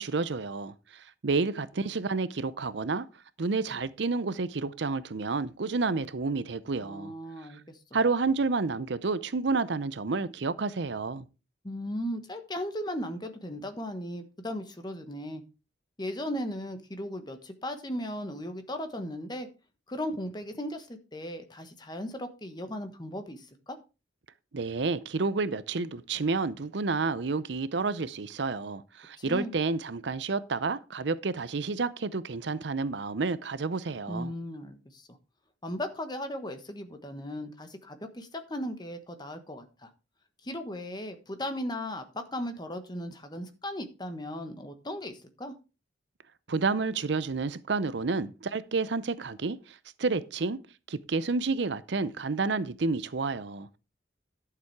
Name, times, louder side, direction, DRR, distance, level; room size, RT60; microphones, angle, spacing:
voice 1, 0.0-3.1 3.4-7.1 7.9-11.2 24.5-34.3 46.5-50.6 50.9-53.8, right 4 dB, 65° right, 0.6 m, -30 dB
voice 2, 6.8-7.8 11.6-15.4 16.0-19.5 19.9-23.8 29.2-29.5 34.1-35.2 35.6-39.9 40.4-45.5, left 1 dB, 20° left, 1.3 m, -37 dB
11.5 x 6.9 x 4.7 m
head